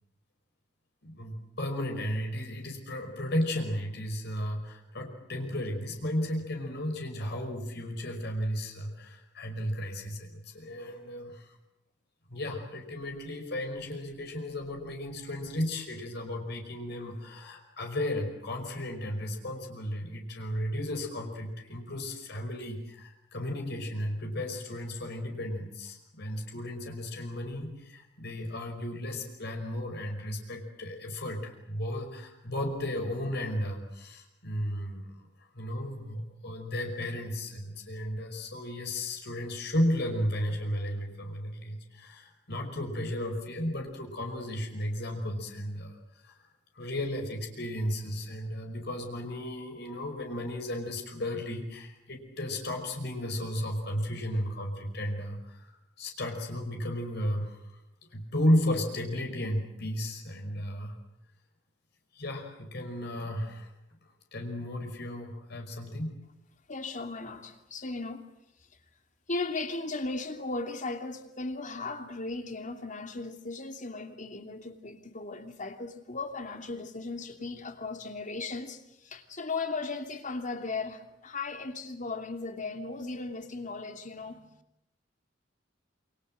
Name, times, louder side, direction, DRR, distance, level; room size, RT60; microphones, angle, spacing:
voice 1, 1.0-11.5 12.3-35.0 35.6-46.0 46.2-46.4 46.8-55.7 56.0-57.6 58.1-61.0 62.2-63.7 64.3-66.1, left 1 dB, 60° left, 5.3 m, -34 dB
voice 2, 66.7-68.3 69.3-84.4, left 3 dB, 45° left, 3.0 m, -37 dB
28.5 x 26.0 x 7.7 m
head